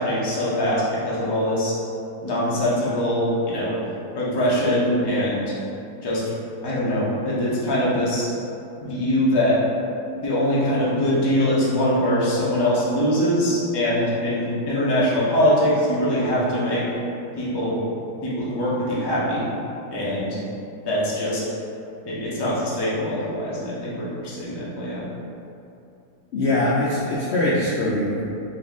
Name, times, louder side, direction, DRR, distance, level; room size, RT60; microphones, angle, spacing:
voice 1, 0.0-1.7 2.2-3.7 4.1-5.5 6.0-6.2 6.6-8.3 8.8-9.5 10.2-16.8 17.3-17.8 18.2-19.5 19.9-20.4 20.9-21.4 22.1-25.0, equal, 30° left, -8 dB, 0.4 m, -22 dB
voice 2, 26.3-28.3, left 1 dB, 90° left, -7 dB, 0.5 m, -22 dB
4.1 x 2.7 x 3.5 m, 2.7 s
omnidirectional pair, 1.7 m